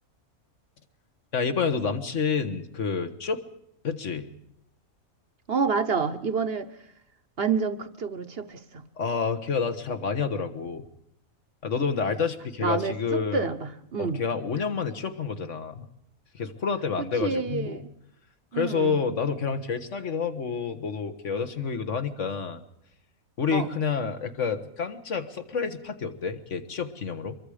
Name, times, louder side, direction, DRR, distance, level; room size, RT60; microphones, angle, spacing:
voice 1, 1.3-3.4 3.8-4.3 9.0-10.8 11.6-13.5 14.0-15.9 16.3-17.8 18.5-22.6 23.4-27.4, left 5 dB, 55° left, 8 dB, 1.7 m, -29 dB
voice 2, 5.5-6.7 7.4-8.8 12.6-14.2 17.2-17.9 18.5-19.0 23.5-23.7, right 5 dB, 45° right, 11 dB, 1.1 m, -28 dB
25.0 x 22.5 x 5.0 m, 0.78 s
omnidirectional pair, 1.5 m